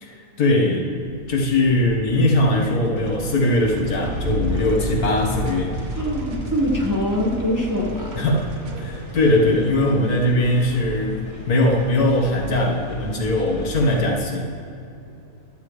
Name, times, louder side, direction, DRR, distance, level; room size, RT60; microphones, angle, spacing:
voice 1, 0.0-0.9 1.3-5.7 8.1-8.5 8.8-14.5, left 1 dB, 80° left, 0 dB, 2.0 m, -20 dB
sound 1, 1.1-11.5, right 1 dB, 55° right, 1.2 m, -33 dB
sound 2, 3.4-14.1, right 1 dB, 20° left, 1.8 m, -37 dB
voice 2, 5.9-8.2, equal, 15° right, -2 dB, 1.3 m, -23 dB
16.0 x 12.0 x 3.2 m, 2.7 s
omnidirectional pair, 1.6 m